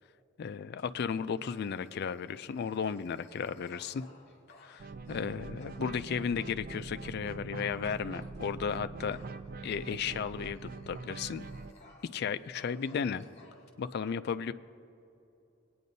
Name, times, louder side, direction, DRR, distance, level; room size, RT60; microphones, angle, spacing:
voice 1, 0.4-4.0 4.6-9.2 9.6-10.6 10.9-11.5 12.1-13.2 13.8-14.5, left 6 dB, 55° left, 11 dB, 0.3 m, -34 dB
Dog, 0.8-7.0 7.6-8.7 9.1-12.2 12.5-13.7, left 3 dB, 35° left, 1.5 m, -59 dB
sound 1, 4.8-11.7, right 3 dB, 45° right, 0.4 m, -43 dB
21.0 x 9.4 x 2.7 m, 2.8 s
head